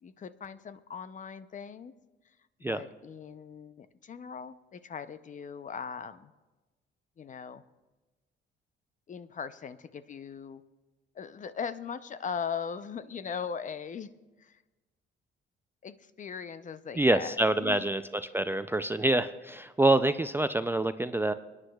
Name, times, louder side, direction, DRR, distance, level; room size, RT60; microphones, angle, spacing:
voice 1, 0.0-1.9 2.7-6.3 7.2-7.6 9.1-10.6 11.1-14.1 14.4-14.6 15.8-17.8, left 6 dB, 40° left, 13 dB, 0.5 m, -39 dB
voice 2, 17.0-18.0 18.3-21.3, right 2 dB, 10° right, 11 dB, 0.3 m, -26 dB
27.0 x 9.7 x 2.3 m, 1.2 s
cardioid pair, 90°, 20 cm